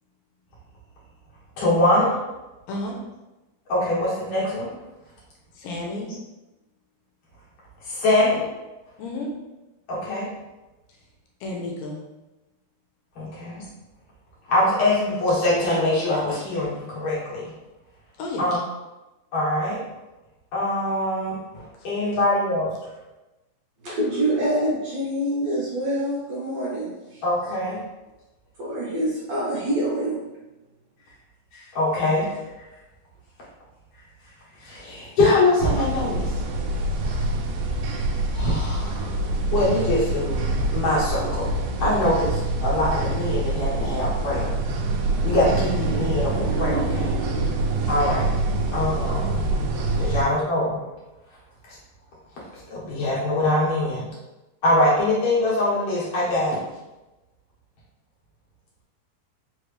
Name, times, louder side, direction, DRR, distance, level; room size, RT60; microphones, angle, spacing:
voice 1, 1.6-2.2 3.7-4.7 7.8-8.4 9.9-10.3 13.2-13.7 14.5-17.5 18.4-18.6 19.3-19.8 20.5-22.7 27.2-27.8 31.5-32.7 34.6-36.4 38.3-39.3 39.5-40.4 40.7-41.5 41.8-44.5 45.2-47.2 47.9-48.3 48.7-49.5 50.0-50.7 51.7-51.8 52.5-54.0 54.6-56.6, left 1 dB, 55° left, -7 dB, 1.9 m, -23 dB
voice 2, 5.5-6.1 9.0-9.3 11.4-12.0 18.2-18.4 21.8-21.9, left 2 dB, 80° left, 0 dB, 2.2 m, -31 dB
voice 3, 23.8-27.2 28.6-30.2, right 1 dB, 65° right, -7 dB, 1.6 m, -26 dB
sound 1, 35.6-50.2, right 2 dB, 85° right, 1.8 m, -25 dB
5.2 x 3.1 x 3.3 m, 1.1 s
omnidirectional pair, 4.1 m